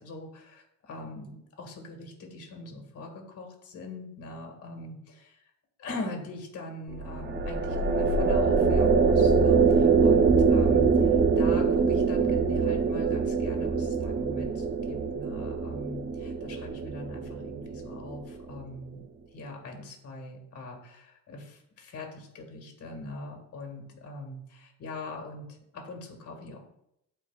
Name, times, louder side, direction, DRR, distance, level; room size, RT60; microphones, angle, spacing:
voice 1, 0.0-5.3 5.8-19.0 19.3-25.5 25.7-26.6, left 2 dB, 45° left, 2 dB, 1.7 m, -42 dB
sound 1, 6.9-18.4, right 5 dB, 30° right, 0.6 m, -24 dB
11.0 x 4.5 x 2.4 m, 0.78 s
cardioid pair, 105°, 35 cm